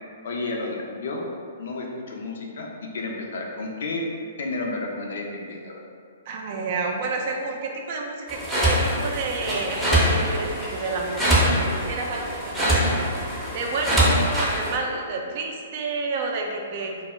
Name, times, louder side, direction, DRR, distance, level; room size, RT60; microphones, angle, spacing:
voice 1, 0.2-1.3 1.6-4.0 4.4-5.8, left 3 dB, 65° left, 0 dB, 0.4 m, -31 dB
voice 2, 6.3-13.1 13.5-16.9, right 3 dB, 50° right, 1 dB, 0.3 m, -30 dB
sound 1, 8.3-14.8, equal, 5° right, 0.6 m, -23 dB
2.0 x 2.0 x 3.4 m, 2.1 s
figure-of-eight pair, 120°, 0 cm